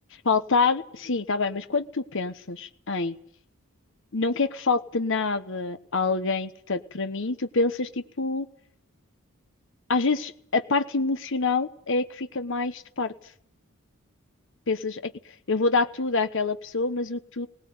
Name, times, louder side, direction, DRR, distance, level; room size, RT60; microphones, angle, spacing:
voice 1, 0.2-3.1 4.1-7.9 8.2-8.5 9.9-13.1 14.7-15.1 15.5-17.5, left 4 dB, 60° left, 10 dB, 1.1 m, -26 dB
20.5 x 19.0 x 9.5 m, 0.63 s
head